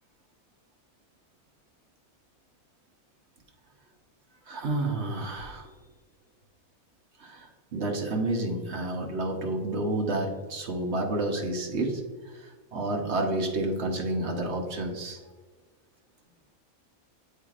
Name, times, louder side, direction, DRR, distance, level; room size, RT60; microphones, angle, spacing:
voice 1, 4.5-5.7 7.2-12.0 12.3-15.2, right 2 dB, 55° right, 1 dB, 1.0 m, -30 dB
8.3 x 4.7 x 2.4 m, 1.4 s
omnidirectional pair, 1.6 m